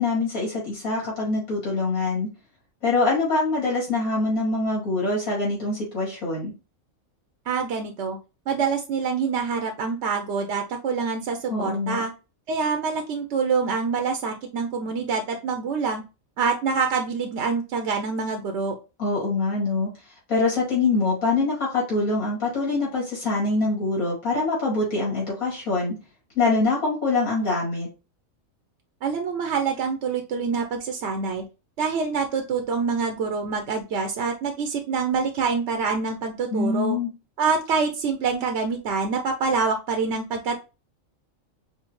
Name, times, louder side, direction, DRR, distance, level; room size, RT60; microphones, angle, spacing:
voice 1, 0.0-2.3 2.8-6.5 11.5-12.0 19.0-19.9 20.3-25.9 26.3-27.9 36.5-37.1, left 3 dB, 80° left, -5 dB, 3.0 m, -24 dB
voice 2, 7.5-8.2 8.5-12.1 12.5-16.0 16.4-18.7 29.0-31.4 31.8-37.0 37.4-40.5, right 5 dB, 60° right, 4 dB, 0.8 m, -26 dB
5.6 x 2.7 x 3.0 m, 0.30 s
omnidirectional pair, 1.4 m